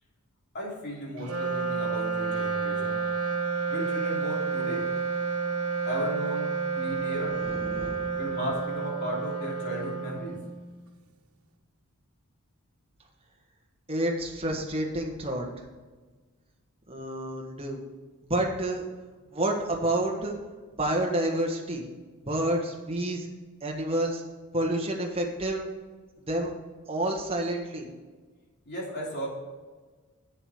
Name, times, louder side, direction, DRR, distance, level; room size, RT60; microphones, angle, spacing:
voice 1, 0.5-3.0 3.7-4.8 5.9-7.4 8.2-10.4 28.6-29.3, equal, 50° left, -3 dB, 3.1 m, -35 dB
Wind instrument woodwind instrument, 1.2-10.8, right 5 dB, 80° right, 1.3 m, -30 dB
voice 2, 7.4-8.2 13.9-15.5 16.9-17.8 18.2-18.9 19.3-20.3 20.7-21.8 22.2-23.3 23.6-24.2 24.5-25.7 26.3-26.5 26.9-27.9, right 1 dB, 25° right, 1 dB, 1.5 m, -29 dB
8.0 x 7.7 x 5.0 m, 1.4 s
head